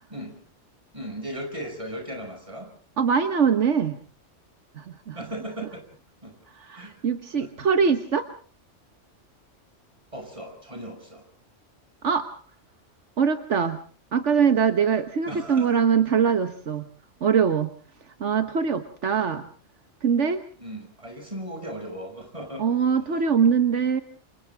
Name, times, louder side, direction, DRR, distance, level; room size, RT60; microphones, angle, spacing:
voice 1, 0.9-2.7 5.1-5.9 6.2-6.3 6.7-6.9 7.4-7.5 10.1-11.2 15.3-15.8 20.6-22.7 23.1-23.2, right 1 dB, 25° right, 3 dB, 6.6 m, -37 dB
voice 2, 3.0-4.0 4.8-5.2 6.6-8.3 12.0-12.3 13.2-13.8 14.1-16.9 17.2-17.7 18.2-19.5 20.0-20.4 22.6-24.0, right 6 dB, 75° right, 9 dB, 1.5 m, -22 dB
29.0 x 26.5 x 3.5 m, 0.41 s
omnidirectional pair, 1.2 m